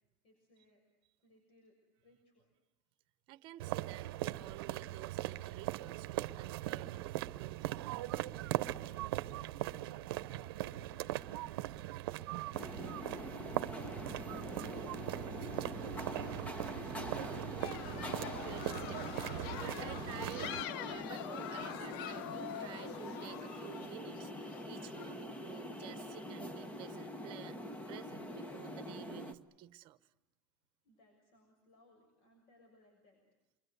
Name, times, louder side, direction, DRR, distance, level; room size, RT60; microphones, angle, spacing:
voice 1, 0.2-0.8 1.2-2.5 9.4-12.1 12.3-16.7 30.8-33.2, left 1 dB, 50° left, 2 dB, 6.6 m, -66 dB
voice 2, 3.3-7.8 17.5-27.6 27.9-30.0, right 16 dB, 45° right, 13 dB, 1.0 m, -52 dB
sound 1, 3.6-20.6, right 16 dB, 90° right, 0.9 m, -40 dB
sound 2, 12.5-29.3, left 1 dB, 10° left, 1.1 m, -44 dB
sound 3, 17.6-25.6, left 10 dB, 70° left, 0.9 m, -45 dB
28.5 x 23.0 x 8.1 m, 1.0 s
supercardioid pair, 160°, 12 cm